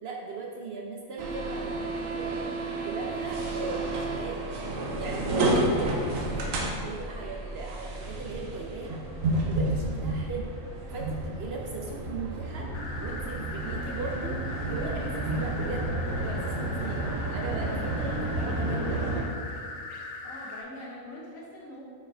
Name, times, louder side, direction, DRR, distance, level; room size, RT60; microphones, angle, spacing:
voice 1, 0.0-4.4 5.0-9.0 9.5-10.5 10.9-12.7 13.0-19.0, right 4 dB, 60° right, 0 dB, 0.8 m, -38 dB
sound 1, 1.2-19.2, right 2 dB, 80° right, 1.2 m, -31 dB
sound 2, 12.7-20.6, left 3 dB, 65° left, 1.0 m, -40 dB
voice 2, 20.2-21.8, left 1 dB, 90° left, -4 dB, 1.7 m, -44 dB
5.8 x 4.6 x 4.4 m, 2.3 s
omnidirectional pair, 1.4 m